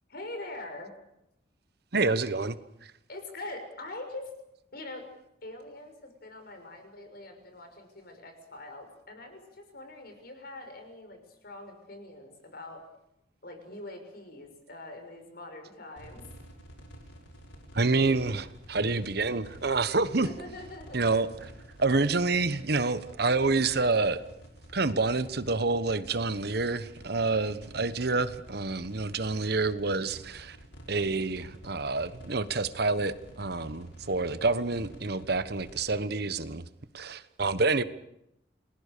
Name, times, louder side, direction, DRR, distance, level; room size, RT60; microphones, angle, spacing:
voice 1, 0.1-0.9 3.1-4.3 4.7-5.1 5.4-12.8 13.4-16.2 20.2-21.0 35.2-35.4, left 2 dB, 55° left, 6.3 m, -43 dB
voice 2, 1.9-2.9 17.7-20.3 20.9-21.5 21.8-24.2 24.7-30.6 30.9-36.6 36.9-37.8, right 3 dB, 60° right, 1.2 m, -28 dB
sound 1, 16.0-36.0, equal, 75° left, 6.2 m, -50 dB
29.5 x 21.0 x 6.8 m
head